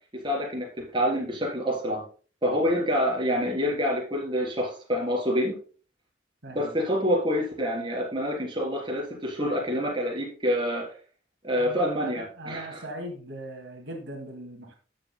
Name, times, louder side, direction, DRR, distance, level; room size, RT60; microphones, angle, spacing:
voice 1, 0.2-2.0 2.4-5.5 6.5-10.9 11.4-12.9, equal, 25° right, -3 dB, 3.7 m, -27 dB
voice 2, 11.5-14.7, right 1 dB, 85° right, 2 dB, 2.2 m, -40 dB
13.0 x 7.8 x 2.2 m, 0.38 s
head